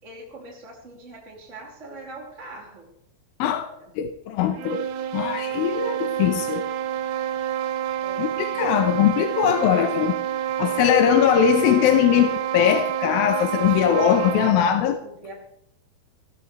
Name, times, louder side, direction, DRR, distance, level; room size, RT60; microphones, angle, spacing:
voice 1, 0.0-2.9 3.8-3.9 8.0-9.0 9.7-9.9 10.8-10.9 15.0-15.3, right 2 dB, 20° right, -3 dB, 2.8 m, -42 dB
voice 2, 4.0-4.8 5.1-6.6 8.2-10.1 10.6-15.0, left 10 dB, 75° left, 7 dB, 2.6 m, -20 dB
sound 1, 4.4-14.7, right 11 dB, 80° right, 3.2 m, -28 dB
18.0 x 15.5 x 3.3 m, 0.73 s
omnidirectional pair, 4.6 m